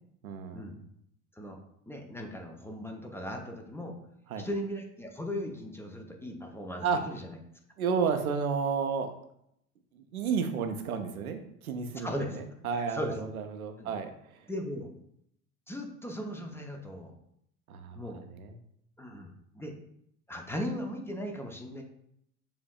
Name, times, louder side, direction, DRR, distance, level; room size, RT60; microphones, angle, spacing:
voice 1, 0.2-0.6 4.3-4.4 6.8-7.0 7.8-9.1 9.9-14.5 17.7-18.6, right 6 dB, 85° right, 7 dB, 0.6 m, -32 dB
voice 2, 1.9-3.9 4.4-7.4 11.9-12.4 12.9-13.1 13.8-13.9 14.5-14.9 15.7-17.1 17.9-18.2 19.0-19.3 19.5-19.7 20.3-21.8, equal, 5° left, 3 dB, 0.6 m, -37 dB
6.9 x 2.6 x 2.3 m, 0.73 s
figure-of-eight pair, 65°, 42 cm